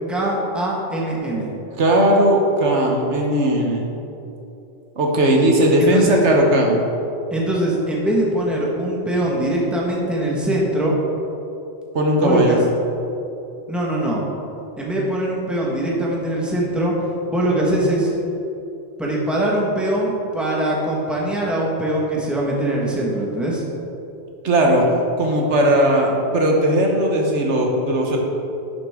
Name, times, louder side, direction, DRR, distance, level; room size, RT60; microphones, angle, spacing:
voice 1, 0.1-1.5 5.8-6.2 7.3-11.0 12.1-12.6 13.7-14.2 14.8-16.9 17.3-18.1 19.0-23.6, right 1 dB, ahead, -4 dB, 1.4 m, -22 dB
voice 2, 1.8-3.8 5.0-6.8 11.9-12.6 24.4-24.9 25.2-28.2, right 1 dB, 80° right, 0 dB, 1.4 m, -17 dB
11.0 x 6.9 x 3.7 m, 2.9 s
omnidirectional pair, 1.2 m